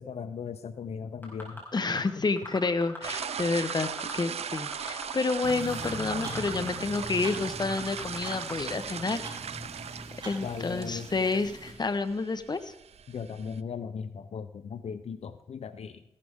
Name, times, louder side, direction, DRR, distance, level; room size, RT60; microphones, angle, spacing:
voice 1, 0.0-1.6 2.2-2.3 10.4-11.1 13.1-16.0, left 6 dB, 80° left, 11 dB, 0.6 m, -38 dB
sound 1, 1.2-2.0 2.4-3.2 3.5-4.1 4.4-6.7 6.9-7.0 7.4-8.5 9.0-9.1, left 2 dB, 20° left, 4.8 m, -40 dB
voice 2, 1.7-9.3 10.2-12.7, left 3 dB, 40° left, 11 dB, 0.9 m, -29 dB
sound 2, 3.0-13.6, right 8 dB, 80° right, 0.4 m, -39 dB
sound 3, 5.4-11.7, equal, 45° right, 4.3 m, -42 dB
15.0 x 12.0 x 3.6 m, 0.83 s
cardioid pair, 70°, 11 cm